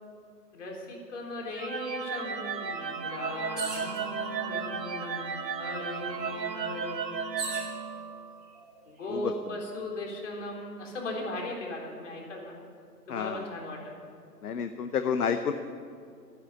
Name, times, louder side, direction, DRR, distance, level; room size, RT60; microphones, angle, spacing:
voice 1, 0.5-7.4 8.9-12.5 13.1-14.0, left 1 dB, 45° left, -1 dB, 3.8 m, -38 dB
sound 1, 1.5-8.5, right 6 dB, 80° right, 1.3 m, -34 dB
sound 2, 3.5-4.0 4.9-5.0 5.3-7.7 8.5-9.0, right 2 dB, ahead, 1.0 m, -40 dB
voice 2, 13.1-13.5 14.4-15.5, left 7 dB, 65° left, 9 dB, 0.9 m, -29 dB
13.5 x 9.8 x 8.9 m, 2.3 s
hypercardioid pair, 160°, 50 cm